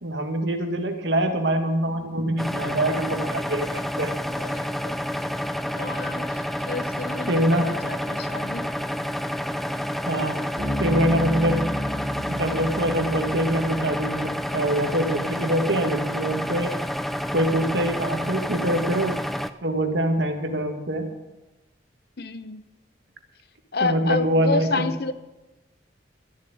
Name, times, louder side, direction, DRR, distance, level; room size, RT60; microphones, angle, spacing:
voice 1, 0.0-4.1 7.3-7.7 10.1-10.4 10.8-11.7 12.3-16.7 17.3-19.2 19.6-21.1 23.8-24.9, right 1 dB, 75° right, 4 dB, 1.9 m, -24 dB
sound 1, 2.4-19.5, equal, ahead, 0.4 m, -29 dB
voice 2, 4.3-5.4 5.7-8.8 22.2-22.7 23.7-25.1, left 3 dB, 55° left, 12 dB, 0.7 m, -30 dB
Bass guitar, 10.6-14.2, equal, 25° right, 4.1 m, -31 dB
14.0 x 7.4 x 9.3 m, 1.1 s
head